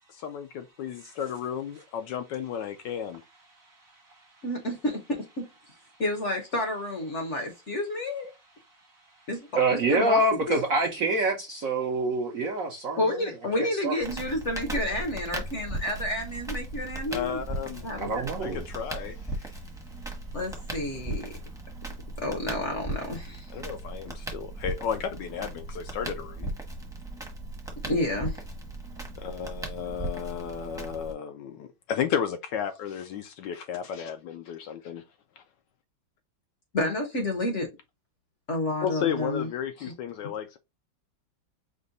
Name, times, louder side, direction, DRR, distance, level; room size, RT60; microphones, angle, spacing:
voice 1, 0.1-3.2 17.1-17.9 18.4-19.5 23.5-26.5 29.2-35.0 35.4-35.5 38.8-40.6, left 8 dB, 75° left, 1.1 m, -33 dB
voice 2, 4.4-5.5 6.0-8.3 9.3-9.4 9.7-10.2 10.5-10.6 13.0-17.4 17.8-18.2 20.3-21.3 22.2-23.5 27.8-28.4 36.7-37.7 38.5-39.5 39.8-39.9, left 1 dB, 50° left, 0.9 m, -30 dB
voice 3, 9.6-13.1 13.6-13.9 18.0-18.7, right 2 dB, 60° right, 0.9 m, -26 dB
Crackle, 14.0-31.1, right 2 dB, 5° right, 0.7 m, -37 dB
5.3 x 2.2 x 3.9 m
omnidirectional pair, 2.2 m